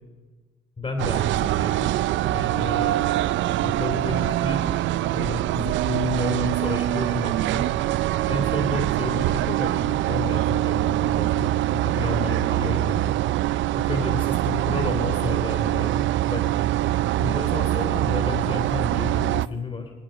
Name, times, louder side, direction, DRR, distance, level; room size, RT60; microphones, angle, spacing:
voice 1, 0.8-1.9 2.3-3.0 3.6-4.7 5.1-7.7 8.3-13.2 13.8-16.4 17.2-19.9, left 3 dB, 30° left, 3 dB, 2.9 m, -31 dB
sound 1, 1.0-19.5, right 14 dB, 75° right, 0.4 m, -24 dB
25.0 x 9.0 x 5.6 m, 1.4 s
cardioid pair, 90°, 20 cm